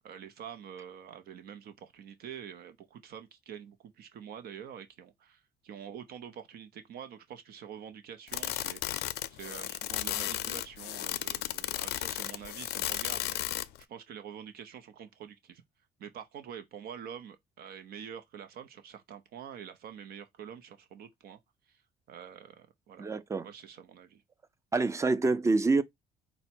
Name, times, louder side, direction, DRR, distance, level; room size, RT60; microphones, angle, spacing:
voice 1, 0.0-13.4 13.9-15.6 16.0-21.4 21.7-21.8 22.1-23.1 23.4-24.2, right 8 dB, 65° right, 0.7 m, -46 dB
sound 1, 8.3-13.8, left 14 dB, 75° left, 0.4 m, -34 dB
voice 2, 23.0-23.5 24.7-25.8, right 3 dB, 15° right, 0.5 m, -26 dB
5.4 x 2.1 x 4.3 m
cardioid pair, 110°, 17 cm